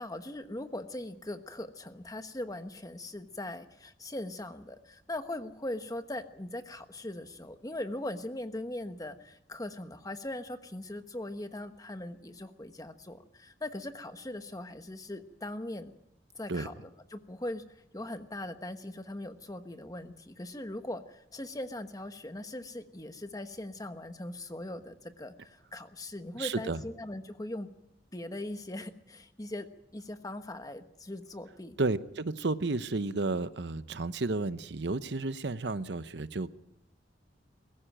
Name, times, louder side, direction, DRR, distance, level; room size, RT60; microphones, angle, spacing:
voice 1, 0.0-16.0 16.3-27.7 28.1-29.7 29.9-31.8, left 1 dB, 20° left, 9 dB, 1.2 m, -40 dB
voice 2, 26.4-26.8 31.8-36.5, right 3 dB, 70° right, 13 dB, 0.8 m, -32 dB
22.0 x 14.5 x 9.0 m, 0.81 s
head